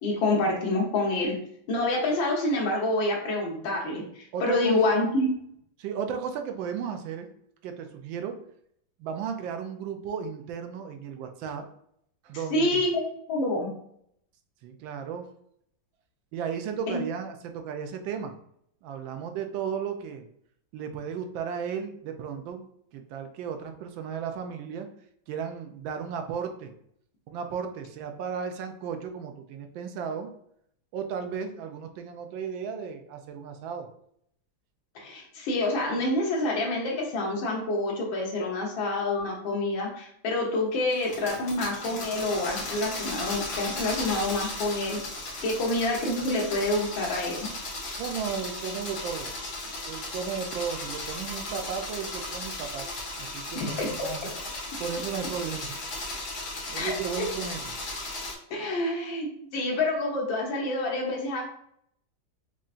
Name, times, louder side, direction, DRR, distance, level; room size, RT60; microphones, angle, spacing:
voice 1, 0.0-1.3 1.7-5.3 12.5-13.7 16.9-17.0 34.9-45.0 45.4-47.5 53.5-53.9 56.7-57.2 58.5-59.3 59.5-61.4, left 2 dB, 70° left, -1 dB, 1.7 m, -27 dB
voice 2, 4.3-4.8 5.8-7.3 7.6-8.4 9.0-11.7 12.2-12.8 14.6-15.3 16.3-18.4 18.8-20.3 20.7-22.7 22.9-24.9 25.3-26.7 27.3-30.3 30.9-33.9 47.4-47.5 48.0-49.4 49.9-52.9 53.2-54.3 54.8-55.8 56.7-57.7, right 7 dB, 75° right, 6 dB, 1.3 m, -34 dB
sound 1, 40.9-58.3, left 2 dB, 55° left, 1.7 m, -36 dB
5.5 x 2.5 x 2.5 m, 0.68 s
omnidirectional pair, 2.2 m